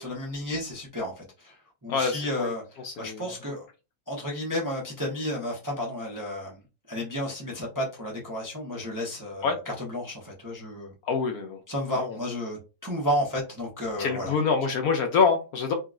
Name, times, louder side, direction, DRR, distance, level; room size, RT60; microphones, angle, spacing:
voice 1, 0.0-1.6 1.8-3.6 4.1-6.6 6.9-10.9 11.7-14.3, left 1 dB, 25° right, -3 dB, 0.4 m, -32 dB
voice 2, 1.9-2.5 2.8-3.2 9.4-9.6 11.0-11.6 12.0-12.2 14.0-15.7, left 5 dB, 70° left, 4 dB, 1.0 m, -25 dB
3.7 x 2.3 x 2.4 m, 0.30 s
omnidirectional pair, 1.8 m